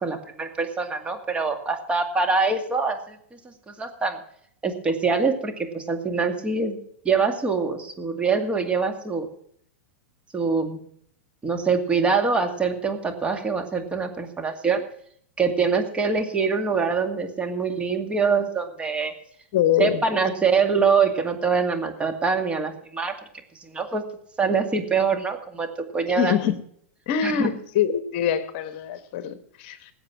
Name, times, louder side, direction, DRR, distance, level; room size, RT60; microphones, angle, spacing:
voice 1, 0.0-4.2 4.6-6.8 7.0-9.3 10.3-10.8 11.4-14.8 15.4-19.1 19.8-23.1 23.6-24.0 24.4-25.7 25.9-26.4 27.2-27.5, right 5 dB, 15° right, 5 dB, 2.2 m, -24 dB
voice 2, 19.5-20.0 26.2-26.6 27.1-29.9, left 9 dB, 55° left, 11 dB, 1.3 m, -24 dB
19.0 x 8.0 x 6.1 m, 0.66 s
hypercardioid pair, 120°, 7 cm